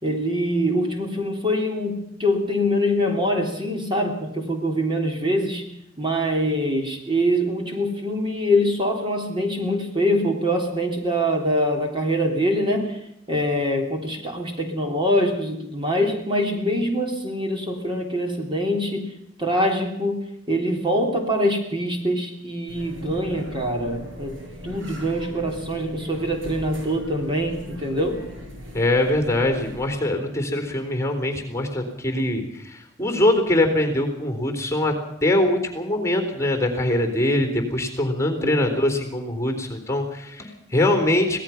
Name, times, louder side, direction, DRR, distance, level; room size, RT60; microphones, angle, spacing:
voice 1, 0.0-5.7 6.0-13.0 13.3-19.1 19.4-24.4 24.6-28.2 38.4-39.0, equal, 25° right, 2 dB, 3.5 m, -24 dB
sound 1, 22.7-30.0, equal, 75° right, 6.5 m, -39 dB
voice 2, 28.7-34.9 35.2-41.4, left 1 dB, 15° left, 6 dB, 3.7 m, -23 dB
25.0 x 18.0 x 5.9 m, 0.79 s
head